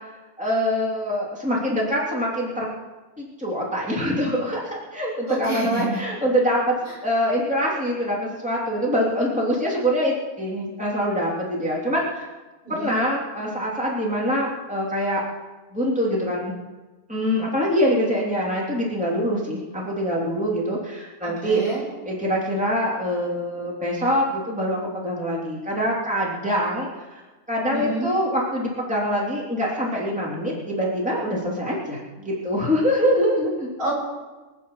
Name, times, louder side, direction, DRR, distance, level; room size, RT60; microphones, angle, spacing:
voice 1, 0.4-2.7 3.2-6.8 7.0-12.3 12.7-15.2 15.7-16.5 17.1-21.6 22.0-27.2 27.5-33.7, equal, 5° right, -4 dB, 3.2 m, -24 dB
voice 2, 5.3-6.0 12.6-13.0 21.4-21.8 27.7-28.1 33.8-33.9, right 3 dB, 80° right, -5 dB, 7.2 m, -28 dB
24.5 x 9.2 x 5.7 m, 1.2 s
omnidirectional pair, 1.7 m